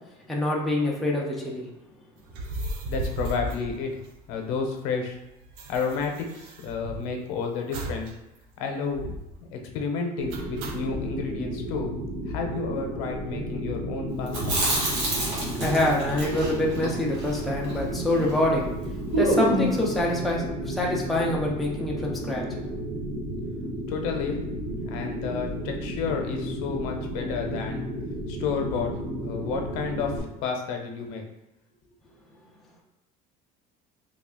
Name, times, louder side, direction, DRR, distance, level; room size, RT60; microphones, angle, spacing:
voice 1, 0.3-1.6 15.6-18.7 19.2-22.4, left 1 dB, ahead, -4 dB, 0.4 m, -26 dB
sound 1, 2.3-4.6 4.8-4.9 5.1-7.2 7.7-8.1 8.4-8.5 8.9-9.4 10.3-11.0, right 2 dB, 60° right, 0.5 m, -36 dB
voice 2, 2.9-4.0 4.3-5.2 5.7-8.1 8.6-9.1 9.5-11.9 12.3-14.6 23.9-24.4 24.9-27.9 28.3-28.9 29.2-30.2 30.4-31.2, left 5 dB, 90° left, 3 dB, 0.7 m, -31 dB
sound 2, 10.2-30.2, equal, 30° right, 0.8 m, -33 dB
Chewing mastication, 14.3-18.4 18.7-18.8 19.1-19.9, right 1 dB, 75° right, 1.4 m, -27 dB
3.2 x 2.3 x 3.6 m, 0.92 s
cardioid pair, 175°, 17 cm